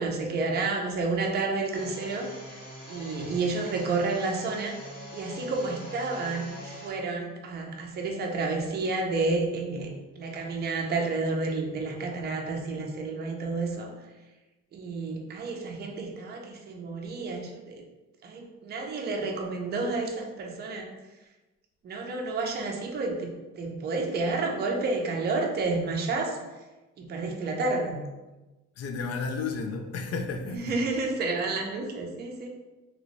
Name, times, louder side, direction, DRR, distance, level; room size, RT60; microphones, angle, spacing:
voice 1, 0.0-2.3 2.9-4.8 5.1-13.9 14.7-17.8 18.2-20.9 21.8-26.4 27.0-28.0 30.5-32.5, right 3 dB, 35° right, 1 dB, 0.4 m, -30 dB
sound 1, 1.7-6.9, left 1 dB, 30° left, 0.9 m, -43 dB
voice 2, 28.8-30.8, left 4 dB, 55° left, 5 dB, 0.4 m, -32 dB
2.9 x 2.5 x 3.0 m, 1.1 s
cardioid pair, 170°, 29 cm